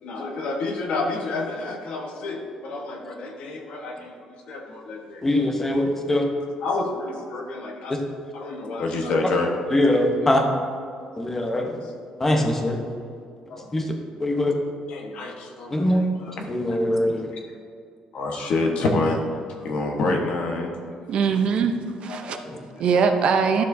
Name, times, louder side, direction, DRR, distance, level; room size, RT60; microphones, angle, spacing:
voice 1, 0.0-4.2 4.5-5.3 6.6-8.0 8.3-9.9 11.1-11.3 11.8-11.9 13.5-13.7 14.3-14.4 14.9-16.5 17.3-17.4 18.1-20.7 22.1-22.8, left 2 dB, 65° left, 1 dB, 1.2 m, -28 dB
voice 2, 5.2-6.2 9.7-10.4 11.2-11.8 12.2-12.8 13.7-13.8 14.2-14.5 15.7-16.0 16.5-17.3, left 1 dB, 15° left, 2 dB, 0.9 m, -22 dB
voice 3, 21.1-22.4 22.8-23.6, right 6 dB, 55° right, 6 dB, 0.6 m, -22 dB
12.5 x 6.5 x 2.7 m, 2.3 s
cardioid pair, 145°, 2 cm